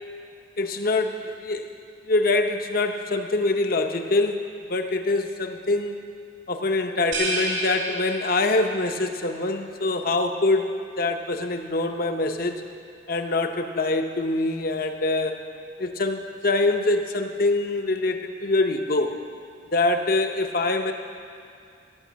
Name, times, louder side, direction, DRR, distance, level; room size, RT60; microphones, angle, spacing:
voice 1, 0.6-1.7 2.0-6.0 6.5-12.6 13.1-15.4 15.8-19.1 19.7-20.9, left 2 dB, 45° left, 6 dB, 0.7 m, -24 dB
sound 1, 7.1-8.8, right 1 dB, 75° right, 2.5 m, -29 dB
16.0 x 5.9 x 7.3 m, 2.4 s
head